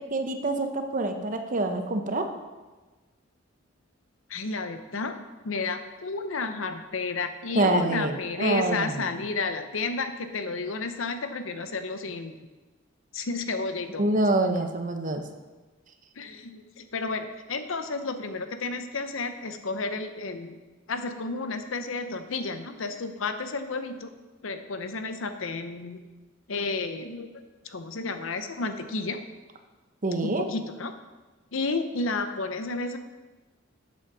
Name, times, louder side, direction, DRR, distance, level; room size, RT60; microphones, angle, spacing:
voice 1, 0.1-2.3 7.5-9.2 14.0-15.2 30.0-30.5, right 2 dB, 40° right, 6 dB, 0.8 m, -26 dB
voice 2, 4.3-5.2 5.4-12.4 13.1-14.1 16.2-20.6 20.9-24.1 24.4-26.0 26.5-27.3 27.6-29.2 30.2-30.9 31.5-33.0, left 3 dB, 70° left, 8 dB, 0.7 m, -31 dB
7.9 x 6.3 x 6.1 m, 1.2 s
head